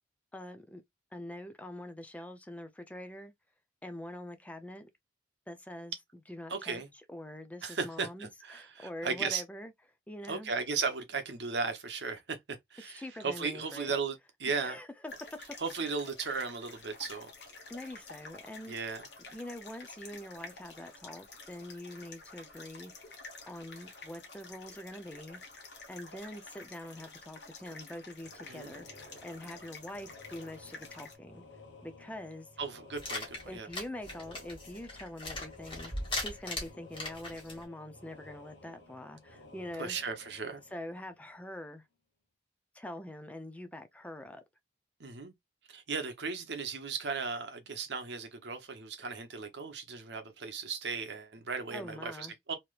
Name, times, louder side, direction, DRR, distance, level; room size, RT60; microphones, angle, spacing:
voice 1, 0.3-0.8 1.1-3.3 3.8-4.9 5.5-6.8 7.1-9.7 10.1-10.5 12.8-13.9 14.5-15.5 17.7-18.7 19.3-22.9 23.5-25.4 25.9-31.4 31.8-32.5 33.5-35.9 36.2-40.0 40.7-41.9 42.7-44.4 51.7-52.3, left 1 dB, 10° left, 0.4 m, -44 dB
voice 2, 6.5-6.9 7.6-9.4 10.3-12.4 12.7-14.8 15.6-17.3 18.7-19.0 28.5-28.7 32.6-33.7 39.8-40.6 45.0-45.3 45.7-52.5, right 5 dB, 70° right, 0.8 m, -36 dB
sound 1, 15.1-31.1, left 3 dB, 70° left, 1.2 m, -50 dB
sound 2, 28.2-41.7, left 3 dB, 85° left, 0.9 m, -55 dB
sound 3, 33.0-37.6, left 2 dB, 30° left, 1.4 m, -39 dB
3.2 x 2.8 x 2.4 m
head